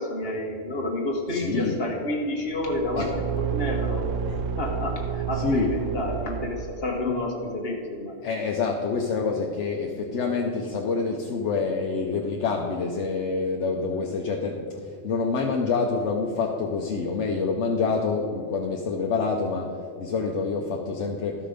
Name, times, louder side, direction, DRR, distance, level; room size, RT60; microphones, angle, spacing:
voice 1, 0.0-4.1 4.6-8.2, left 1 dB, 50° left, 0 dB, 1.7 m, -29 dB
voice 2, 1.3-1.8 3.0-3.1 5.4-5.7 8.2-21.5, left 4 dB, 70° left, 1 dB, 1.1 m, -27 dB
Car / Engine, 2.5-7.1, right 7 dB, 90° right, 1.0 m, -30 dB
13.0 x 5.9 x 5.1 m, 2.3 s
omnidirectional pair, 1.3 m